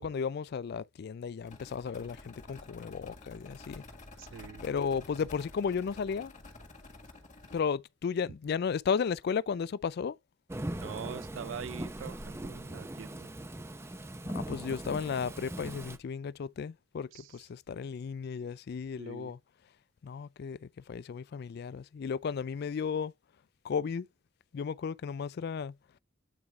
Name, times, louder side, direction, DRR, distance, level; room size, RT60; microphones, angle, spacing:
voice 1, 0.0-3.8 4.6-6.3 7.5-10.2 14.3-19.4 20.0-23.1 23.6-24.1 24.5-25.7, left 6 dB, 55° left, 0.3 m, -34 dB
sound 1, 1.5-7.6, left 2 dB, 40° left, 1.8 m, -50 dB
voice 2, 4.2-4.6 10.8-13.3 17.1-17.4 19.0-19.3, right 7 dB, 70° right, 0.3 m, -44 dB
Thunderstorm / Rain, 10.5-16.0, right 1 dB, 15° right, 0.6 m, -40 dB
9.1 x 4.7 x 2.5 m
head